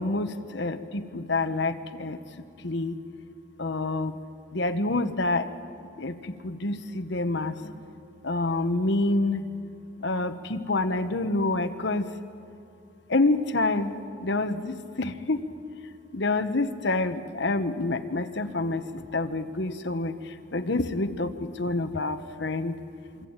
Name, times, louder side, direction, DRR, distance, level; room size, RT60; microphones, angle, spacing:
voice 1, 0.0-2.2 2.6-2.9 3.6-4.1 4.5-5.5 6.0-6.1 6.4-7.8 8.2-9.5 10.0-12.1 13.1-15.4 16.1-20.1 20.5-21.3 21.6-22.7, left 2 dB, 55° left, 10 dB, 1.1 m, -27 dB
26.5 x 24.5 x 8.9 m, 2.5 s
head